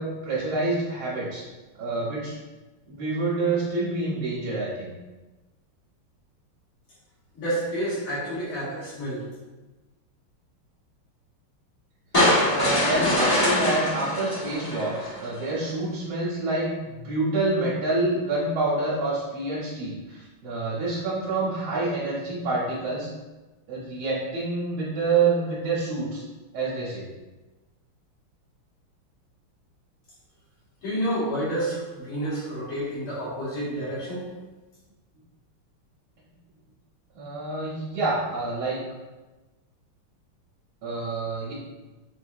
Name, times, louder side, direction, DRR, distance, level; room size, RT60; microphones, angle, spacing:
voice 1, 0.0-1.4 1.8-2.3 2.9-4.9 12.4-23.1 23.7-26.2 26.5-27.1 37.1-38.8 40.8-41.5, right 3 dB, 70° right, -9 dB, 1.8 m, -27 dB
voice 2, 7.4-9.3 30.8-34.3, right 1 dB, 80° left, -8 dB, 2.5 m, -29 dB
sound 1, 12.1-15.4, left 1 dB, 35° left, 0.6 m, -23 dB
6.6 x 2.7 x 2.6 m, 1.2 s
omnidirectional pair, 2.4 m